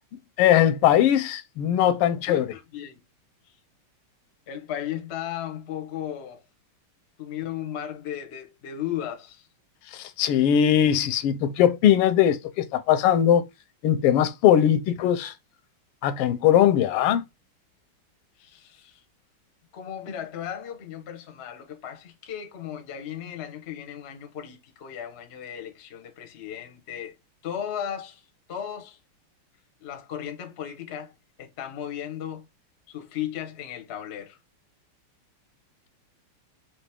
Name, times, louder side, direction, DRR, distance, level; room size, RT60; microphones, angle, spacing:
voice 1, 0.4-2.5 9.9-13.5 13.8-15.3 16.0-17.2, left 10 dB, 85° left, 1.6 m, -20 dB
voice 2, 2.3-3.0 4.5-6.4 7.2-9.5 18.4-19.0 19.7-27.1 27.4-29.0 29.8-31.1 31.4-32.5 32.9-34.4, left 10 dB, 65° left, 0.6 m, -35 dB
5.1 x 2.7 x 3.4 m
omnidirectional pair, 2.4 m